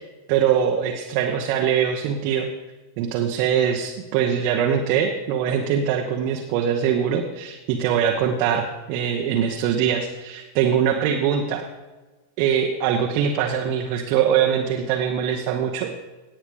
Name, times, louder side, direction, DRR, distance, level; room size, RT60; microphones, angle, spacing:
voice 1, 0.3-2.5 3.0-11.6 12.4-16.0, right 8 dB, 45° right, 2 dB, 1.0 m, -22 dB
17.5 x 8.7 x 3.5 m, 1.2 s
figure-of-eight pair, 90°, 0 cm